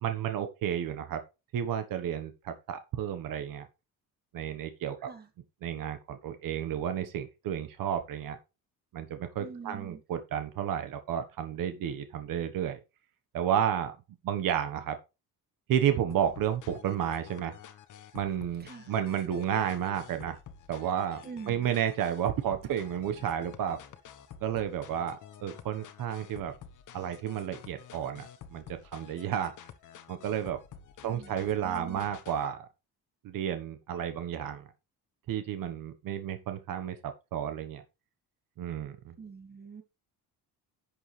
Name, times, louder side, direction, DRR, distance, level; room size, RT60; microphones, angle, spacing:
voice 1, 0.0-1.2 1.5-3.7 4.3-5.1 5.6-8.4 8.9-12.8 13.3-14.0 14.2-15.0 15.7-17.6 18.1-20.4 20.7-21.2 21.5-23.8 24.4-26.5 26.9-29.5 30.1-30.6 31.0-32.7 33.2-34.6 35.3-37.8 38.6-39.1, right 9 dB, 65° right, 9 dB, 1.3 m, -32 dB
voice 2, 9.4-10.0 18.6-18.9 21.2-21.7 31.0-32.0 39.2-39.8, right 5 dB, 25° right, 7 dB, 1.9 m, -45 dB
sound 1, 16.1-32.5, left 9 dB, 55° left, 1.2 m, -50 dB
11.0 x 7.0 x 3.3 m, 0.27 s
cardioid pair, 160°, 36 cm